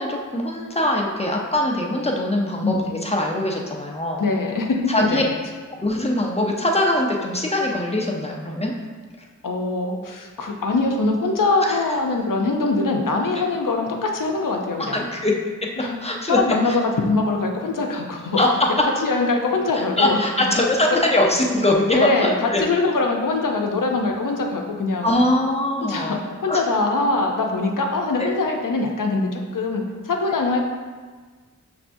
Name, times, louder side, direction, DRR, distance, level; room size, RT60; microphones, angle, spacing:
voice 1, 0.0-4.2 4.9-5.2 5.8-8.7 11.6-11.8 14.8-15.3 15.6-15.7 16.0-16.4 16.6-16.8 18.4-18.5 20.0-22.6 25.0-26.2 26.5-26.6 28.2-28.3, left 1 dB, 20° left, -1 dB, 0.7 m, -22 dB
voice 2, 4.2-5.2 9.4-15.0 15.8-16.0 16.3-18.4 18.7-20.2 20.9-21.0 21.9-25.2 25.8-30.6, left 3 dB, 70° left, 2 dB, 0.6 m, -23 dB
5.9 x 3.3 x 2.6 m, 1.4 s
wide cardioid pair, 45°, 33 cm